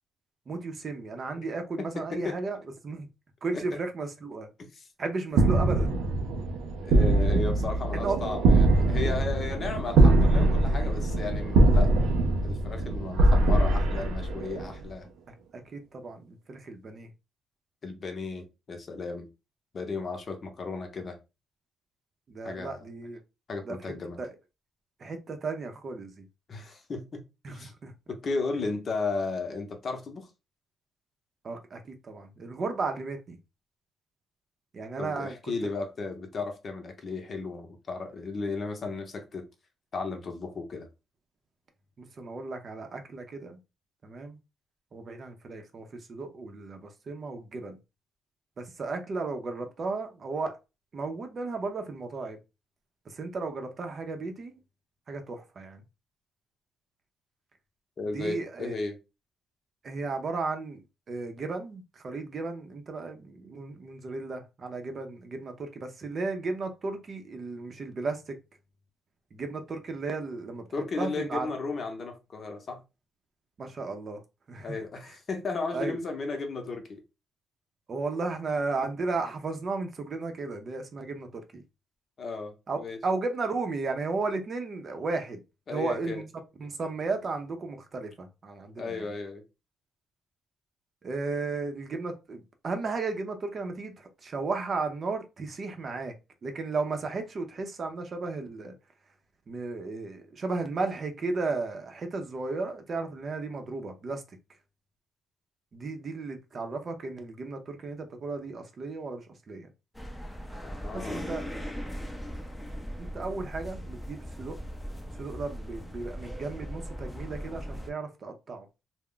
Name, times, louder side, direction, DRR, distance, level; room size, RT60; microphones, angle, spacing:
voice 1, 0.5-2.6 2.8-3.1 3.4-4.5 5.0-5.9 8.0-8.2 15.5-17.1 22.3-23.2 23.6-24.3 25.0-26.2 27.4-27.9 31.4-33.4 34.7-35.5 42.0-43.6 44.0-44.4 44.9-47.8 48.6-50.6 50.9-52.4 53.1-54.6 55.1-55.8 58.1-58.7 59.8-60.8 61.1-68.4 69.3-70.6 71.0-71.5 73.6-74.2 74.5-74.8 75.7-76.0 77.9-81.6 82.7-85.4 85.7-86.3 86.6-89.1 91.0-96.2 96.4-98.7 99.5-104.2 105.7-109.7 110.9-111.5 113.0-114.6 115.2-118.7, right 3 dB, 45° right, 0.6 m, -34 dB
voice 2, 1.8-2.4 3.5-3.6 4.6-4.8 6.8-11.9 12.4-15.1 17.8-19.3 19.7-21.2 22.4-22.9 23.5-24.2 26.5-27.7 28.1-30.3 35.0-39.4 39.9-40.9 58.0-59.0 70.7-72.8 74.6-77.0 82.2-83.0 85.7-86.2 88.8-89.4 110.6-111.3, left 3 dB, 45° left, 0.7 m, -34 dB
sound 1, 5.3-14.8, right 2 dB, 90° right, 0.5 m, -22 dB
sound 2, 109.9-117.9, equal, 5° left, 0.6 m, -39 dB
2.3 x 2.1 x 3.7 m
cardioid pair, 90°, 0 cm